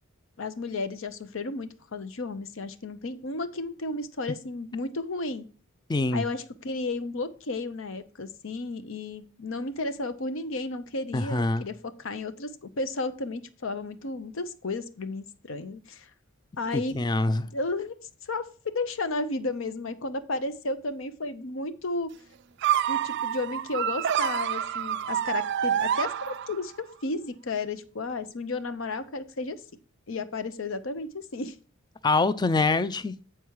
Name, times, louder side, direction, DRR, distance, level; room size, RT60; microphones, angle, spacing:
voice 1, 0.4-5.5 6.1-16.1 16.6-17.0 17.4-17.9 18.2-22.1 22.9-29.6 30.1-31.5, left 3 dB, 65° left, 0.7 m, -33 dB
voice 2, 5.9-6.3 11.1-11.6 16.7-17.5 32.0-33.2, left 3 dB, 20° left, 0.4 m, -25 dB
sound 1, 22.6-26.8, right 9 dB, 55° right, 0.3 m, -27 dB
8.8 x 4.6 x 4.6 m
head